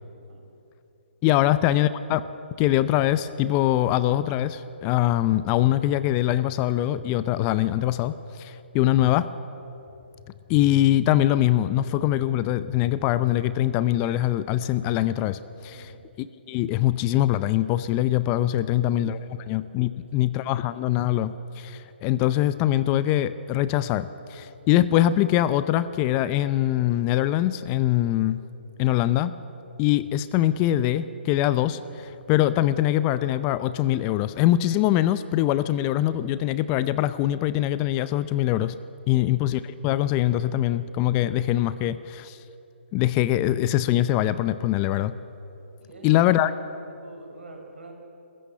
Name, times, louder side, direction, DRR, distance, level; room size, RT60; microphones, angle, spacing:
voice 1, 1.2-2.2 2.6-9.3 10.5-15.9 16.2-28.4 28.8-29.3 29.8-38.7 39.1-42.4 42.9-45.1 46.0-46.5, left 13 dB, 25° left, 15 dB, 0.5 m, -23 dB
voice 2, 15.7-16.0 18.5-19.0 19.2-19.4 19.8-20.3 39.0-39.3 45.8-47.9, right 2 dB, 75° right, 2 dB, 5.1 m, -48 dB
21.5 x 14.0 x 8.8 m, 2.8 s
hypercardioid pair, 145°, 6 cm